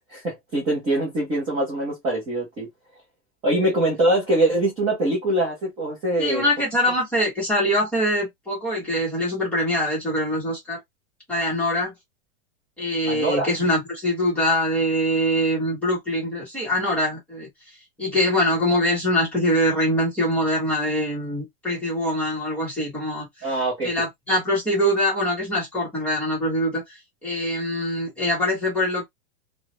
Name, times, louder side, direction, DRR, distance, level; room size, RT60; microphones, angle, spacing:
voice 1, 0.1-2.7 3.4-6.5 13.1-13.5 23.4-23.9, right 1 dB, 15° right, 0.5 m, -23 dB
voice 2, 6.2-10.8 11.3-11.9 12.8-17.5 18.0-23.5 23.8-29.1, equal, 5° left, 0.9 m, -23 dB
2.3 x 2.1 x 2.9 m
supercardioid pair, 170°, 33 cm